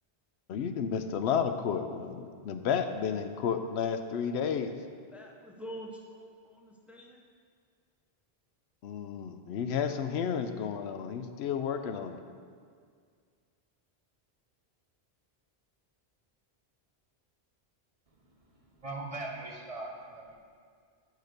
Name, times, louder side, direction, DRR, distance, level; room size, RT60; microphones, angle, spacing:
voice 1, 0.5-4.7 8.8-12.2, left 7 dB, 85° left, 8 dB, 0.8 m, -32 dB
voice 2, 5.1-7.2, equal, ahead, 1 dB, 0.5 m, -46 dB
voice 3, 18.6-20.4, right 2 dB, 35° right, 0 dB, 0.8 m, -40 dB
6.6 x 5.0 x 6.5 m, 2.1 s
omnidirectional pair, 1.1 m